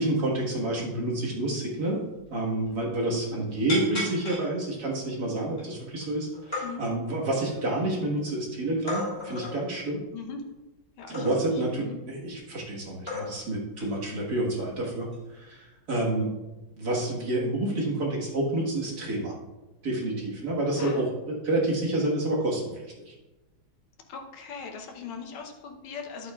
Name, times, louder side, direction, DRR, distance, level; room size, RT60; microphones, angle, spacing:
voice 1, 0.0-2.0 2.3-10.0 11.1-16.3 16.7-19.4 19.8-23.1, right 1 dB, 50° right, -3 dB, 2.0 m, -29 dB
sound 1, 1.8-1.9 2.2-2.3 2.6-3.1 3.7-4.4 5.0-5.1 5.5-6.0 6.3-6.6 7.2-8.1 8.9-9.6 11.1-11.6 12.5-12.6 13.1-13.5 13.8-14.0 15.1-15.4, left 2 dB, 25° left, 3.1 m, -34 dB
voice 2, 3.1-3.4 6.6-6.9 10.1-10.4 11.0-11.5 11.8-12.0 14.1-14.2 20.8-21.0 24.1-26.3, left 5 dB, 80° left, 3 dB, 1.8 m, -40 dB
11.5 x 8.2 x 2.4 m, 1.1 s
omnidirectional pair, 2.2 m